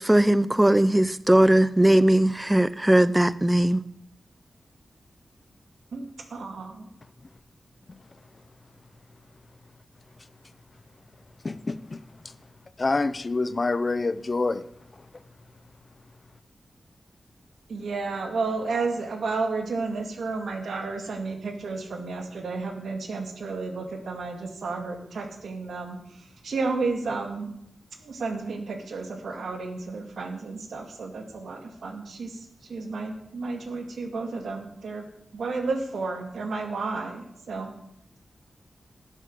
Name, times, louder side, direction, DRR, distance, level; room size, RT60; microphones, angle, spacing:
voice 1, 0.0-3.8, right 1 dB, 10° right, 0.7 m, -19 dB
voice 2, 5.9-6.9 17.7-26.0 26.4-27.5 28.0-35.0 35.3-37.7, right 3 dB, 85° right, 2.2 m, -32 dB
voice 3, 11.4-12.0 12.8-14.6, left 3 dB, 45° left, 0.7 m, -26 dB
12.5 x 7.9 x 7.8 m
cardioid pair, 65°, 0 cm